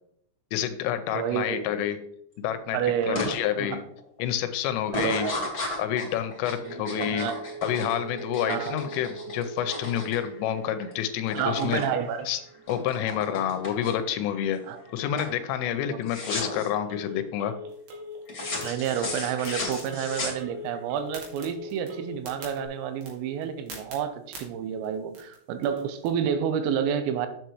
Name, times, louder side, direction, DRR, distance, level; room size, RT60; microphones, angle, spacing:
voice 1, 0.5-2.0 2.4-2.8 3.1-3.8 4.2-5.3 5.8-7.3 7.6-11.8 12.3-12.4 12.7-14.6 14.9-17.5, left 10 dB, 85° left, 9 dB, 3.2 m, -28 dB
voice 2, 1.1-1.6 2.7-3.8 4.9-5.5 6.6-7.4 8.5-8.8 11.4-12.3 14.7-14.8 15.9-16.0 18.6-27.3, right 8 dB, 90° right, 9 dB, 3.5 m, -29 dB
sound 1, 3.1-3.3 3.8-4.2 4.9-10.9 11.2-11.9 12.2-14.1 14.6-14.9 15.2-15.4 16.1-16.7 18.3-20.8, left 2 dB, 30° left, 1.6 m, -35 dB
Telephone, 6.6-22.7, right 1 dB, 70° right, 3.6 m, -43 dB
sound 2, 17.7-26.1, right 3 dB, 55° right, 3.4 m, -49 dB
8.4 x 8.0 x 3.1 m, 0.71 s
omnidirectional pair, 5.9 m